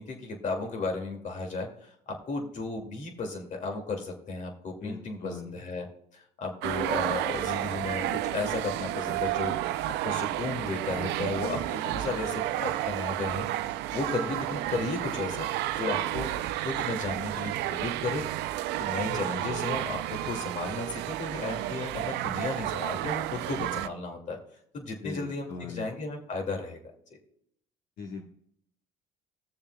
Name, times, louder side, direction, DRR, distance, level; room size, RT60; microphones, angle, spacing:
voice 1, 0.0-5.9 6.1-9.5 10.0-13.4 13.9-18.2 18.8-24.4 24.7-26.8, left 3 dB, 45° left, 2 dB, 2.3 m, -34 dB
voice 2, 4.8-5.6 19.1-19.7 25.0-25.9 28.0-28.3, left 4 dB, 70° left, 0 dB, 1.2 m, -40 dB
sound 1, 6.6-23.9, right 14 dB, 85° right, 0.5 m, -31 dB
20.0 x 7.0 x 2.2 m, 0.73 s
cardioid pair, 110°, 17 cm